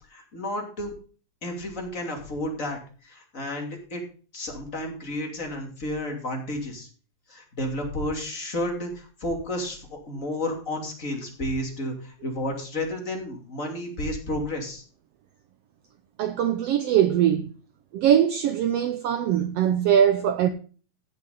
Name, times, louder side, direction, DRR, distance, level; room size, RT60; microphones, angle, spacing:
voice 1, 0.1-0.9 1.4-4.0 4.3-6.9 7.3-14.8, left 1 dB, 25° left, 2.8 m, -31 dB
voice 2, 16.2-17.5 17.9-20.5, right 10 dB, 90° right, 1.3 m, -21 dB
15.5 x 6.8 x 3.8 m
omnidirectional pair, 3.7 m